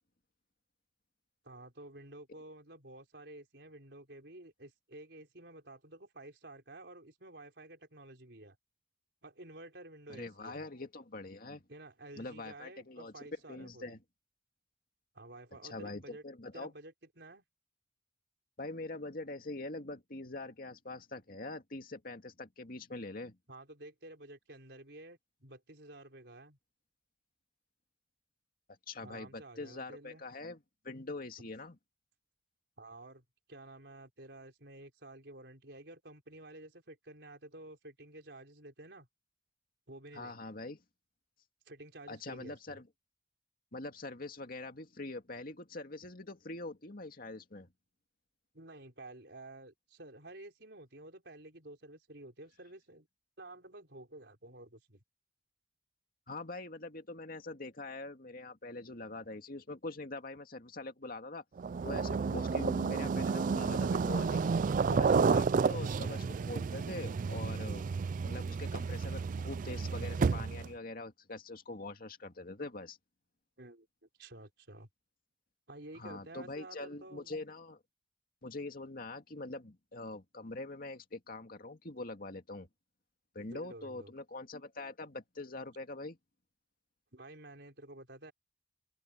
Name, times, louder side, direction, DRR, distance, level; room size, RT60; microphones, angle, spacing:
voice 1, 1.4-8.6 9.2-10.7 11.7-13.9 15.1-16.2 16.5-17.4 23.5-26.6 29.0-30.2 31.4-31.5 32.8-39.1 39.9-40.5 41.7-42.8 48.5-53.1 53.4-55.0 65.2-65.6 73.6-73.9 74.2-74.9 75.7-77.4 83.4-84.1 87.1-88.3, right 2 dB, 65° right, 5.2 m, -51 dB
voice 2, 10.1-11.6 12.2-13.1 13.5-14.0 15.6-16.7 18.6-23.4 28.9-31.8 40.1-40.8 42.1-42.9 43.7-47.7 56.3-61.4 61.8-64.5 64.8-67.8 68.2-73.0 76.0-77.8 78.4-82.7 83.3-86.2, left 2 dB, 55° left, 2.2 m, -44 dB
sound 1, 61.6-70.7, right 5 dB, 45° right, 0.3 m, -31 dB
open air
head